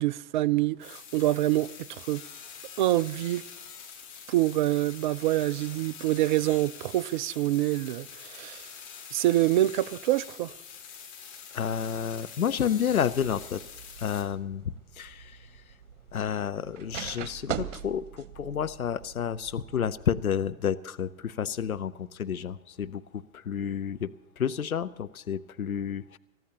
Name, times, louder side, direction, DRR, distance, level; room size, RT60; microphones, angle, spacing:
voice 1, 0.0-2.2 2.8-3.4 4.3-8.7 9.1-10.5, right 15 dB, 35° right, 0.4 m, -26 dB
sound 1, 0.8-14.2, left 7 dB, 50° left, 3.9 m, -45 dB
voice 2, 11.5-13.6 14.0-15.6 16.1-26.2, left 8 dB, 85° left, 0.6 m, -30 dB
sound 2, 12.9-20.1, right 9 dB, 60° right, 1.1 m, -42 dB
27.5 x 14.0 x 2.9 m
figure-of-eight pair, 95°, 42 cm